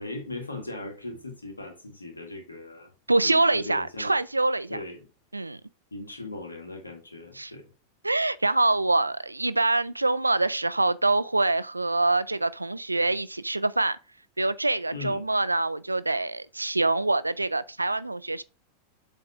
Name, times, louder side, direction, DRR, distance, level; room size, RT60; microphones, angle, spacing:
voice 1, 0.0-2.9 3.2-4.1 4.7-5.0 5.9-7.7 14.9-15.2, left 2 dB, 80° left, 1.8 m, -38 dB
voice 2, 3.1-4.8 5.3-5.6 7.4-7.5 8.0-14.0 14.4-18.4, right 2 dB, 85° right, 0.4 m, -25 dB
8.0 x 3.4 x 4.8 m
figure-of-eight pair, 90°, 0 cm